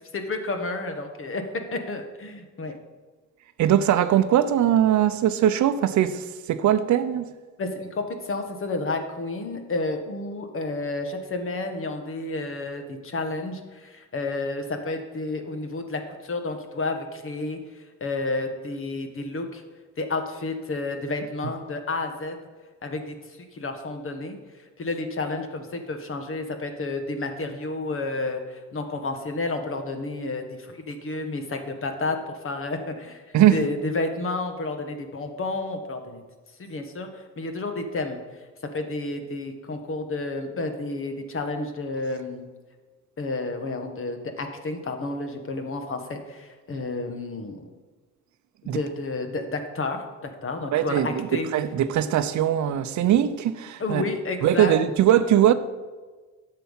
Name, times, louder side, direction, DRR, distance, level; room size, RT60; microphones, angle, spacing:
voice 1, 0.1-1.4 1.7-2.7 7.6-17.6 18.0-19.6 20.0-22.4 22.8-23.1 23.5-24.4 24.8-36.2 36.6-38.2 38.7-42.5 43.2-47.6 48.6-51.5 53.8-54.8, left 2 dB, 45° left, 1.6 m, -31 dB
voice 2, 3.6-7.3 33.3-33.6 48.7-48.8 50.7-54.0 54.4-55.5, right 11 dB, 70° right, 0.7 m, -21 dB
10.0 x 7.0 x 5.6 m
cardioid pair, 90°, 30 cm